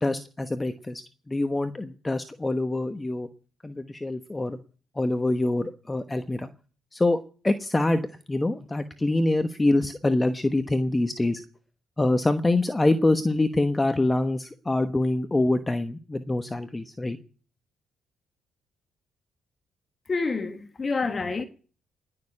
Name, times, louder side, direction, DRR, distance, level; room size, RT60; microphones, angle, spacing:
voice 1, 0.0-3.3 3.6-4.6 5.0-6.5 6.9-7.2 7.4-11.4 12.0-17.2, left 2 dB, 15° left, 1.1 m, -25 dB
voice 2, 20.1-21.4, left 4 dB, 35° left, 1.5 m, -28 dB
20.0 x 6.8 x 9.9 m
cardioid pair, 90°, 0 cm